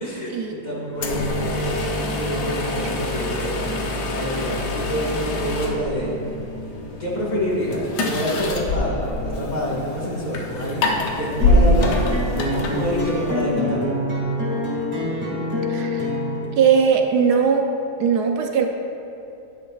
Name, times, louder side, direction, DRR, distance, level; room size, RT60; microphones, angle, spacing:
voice 1, 0.0-6.2 7.0-12.0 12.5-13.9, equal, 25° left, -6 dB, 1.6 m, -27 dB
sound 1, 0.9-13.5, left 1 dB, 80° left, 1.5 m, -25 dB
sound 2, 11.4-16.4, equal, 5° right, 1.8 m, -25 dB
voice 2, 15.7-16.1 16.6-17.6 18.0-18.7, right 7 dB, 75° right, 3 dB, 1.2 m, -19 dB
11.0 x 10.0 x 2.4 m, 2.9 s
omnidirectional pair, 1.8 m